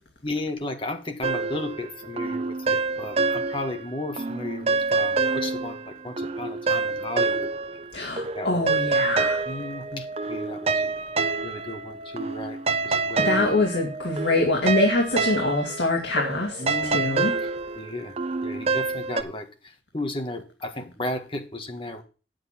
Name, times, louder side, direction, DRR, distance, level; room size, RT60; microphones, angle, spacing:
voice 1, 0.2-5.8 6.0-7.5 8.3-8.6 9.2-10.9 11.4-13.4 16.6-17.2 17.8-18.1 18.4-19.5 19.9-22.0, left 2 dB, 30° left, 6 dB, 1.6 m, -34 dB
sound 1, 1.2-3.8 4.2-7.9 8.2-19.2, right 4 dB, 35° right, 0.7 m, -27 dB
voice 2, 7.9-9.4 13.2-17.3, left 2 dB, 80° left, 0 dB, 2.2 m, -24 dB
9.1 x 8.0 x 5.9 m, 0.35 s
head